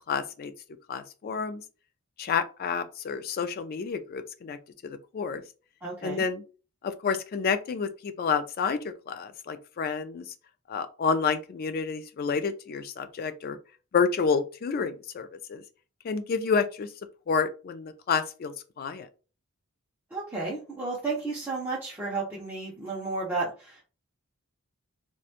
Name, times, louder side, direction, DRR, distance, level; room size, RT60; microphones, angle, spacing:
voice 1, 0.1-0.5 0.9-1.6 2.2-4.6 4.8-5.4 6.0-6.4 6.8-10.3 10.7-13.6 13.9-15.6 16.0-16.9 17.3-19.1, left 5 dB, 45° left, 0.3 m, -29 dB
voice 2, 5.8-6.2 20.1-23.8, right 3 dB, 10° right, 0.5 m, -32 dB
2.8 x 2.2 x 2.4 m
head